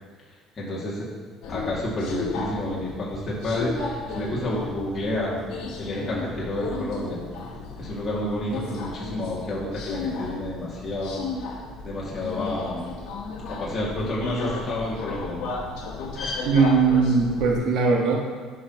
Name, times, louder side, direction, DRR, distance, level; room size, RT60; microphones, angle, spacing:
voice 1, 0.6-1.1 1.5-5.5 5.8-7.2 7.8-11.1 11.8-12.9 13.5-15.5 16.1-16.4, left 1 dB, 30° left, -7 dB, 2.1 m, -29 dB
Subway metro underground, 1.4-17.6, left 4 dB, 75° left, 1.2 m, -34 dB
voice 2, 16.4-18.2, right 4 dB, 65° right, -1 dB, 1.4 m, -20 dB
11.0 x 5.6 x 2.9 m, 1.5 s
supercardioid pair, 90°, 0 cm